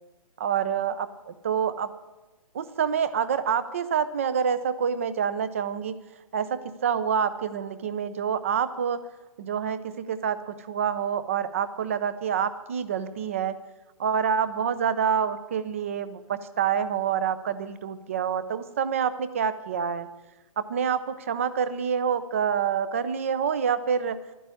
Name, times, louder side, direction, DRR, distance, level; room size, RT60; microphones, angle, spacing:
voice 1, 0.4-1.9 2.5-5.9 6.3-9.0 9.4-13.6 14.0-20.1 20.6-24.2, right 7 dB, 20° right, 14 dB, 0.6 m, -27 dB
12.0 x 10.0 x 9.7 m, 1.1 s
hypercardioid pair, 175°, 19 cm